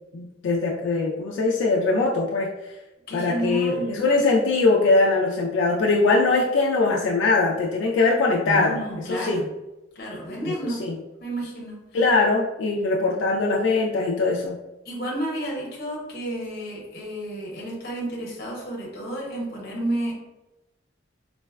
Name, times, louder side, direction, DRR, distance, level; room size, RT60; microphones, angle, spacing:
voice 1, 0.1-2.5 3.1-8.8 9.1-9.4 10.5-11.0 11.9-14.6, left 3 dB, 90° left, -2 dB, 0.3 m, -21 dB
voice 2, 3.1-3.9 8.4-9.5 10.0-10.8 11.2-11.8 14.9-20.1, right 1 dB, 60° left, -2 dB, 0.8 m, -31 dB
3.9 x 2.1 x 2.3 m, 1.0 s
head